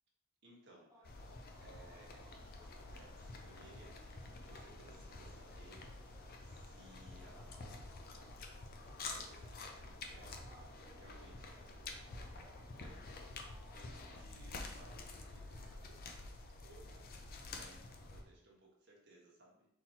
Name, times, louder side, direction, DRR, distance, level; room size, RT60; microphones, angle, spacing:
voice 1, 0.4-0.9 1.2-5.9 6.4-8.0 9.1-10.4 10.7-13.3 13.7-19.7, right 1 dB, 55° right, -3 dB, 1.2 m, -63 dB
sound 1, 0.9-15.8, right 1 dB, 15° right, 0.8 m, -66 dB
sound 2, 1.0-18.2, left 3 dB, 45° left, 0.5 m, -49 dB
4.0 x 2.9 x 4.2 m, 0.77 s
head